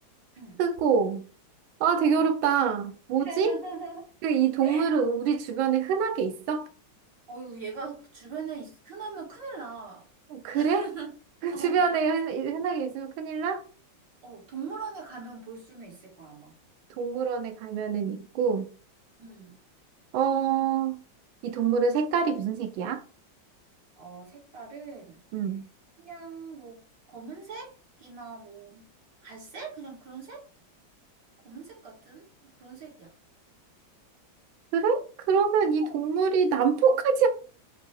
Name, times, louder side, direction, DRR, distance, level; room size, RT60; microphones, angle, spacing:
voice 1, 0.6-1.2 1.8-3.5 4.2-6.7 10.3-10.9 11.4-13.6 17.0-18.7 20.1-21.0 21.4-23.0 25.3-25.6 34.7-37.3, right 6 dB, 85° right, 1.4 m, -25 dB
voice 2, 2.0-2.4 3.2-4.0 4.6-5.0 7.3-10.1 10.5-11.1 11.5-12.0 14.2-16.5 19.2-19.6 24.0-25.2 26.0-26.8 27.1-28.9 29.2-30.4 31.4-32.3 32.6-33.1 35.8-35.9, right 4 dB, 65° right, 2.4 m, -41 dB
4.9 x 2.3 x 4.4 m
omnidirectional pair, 2.1 m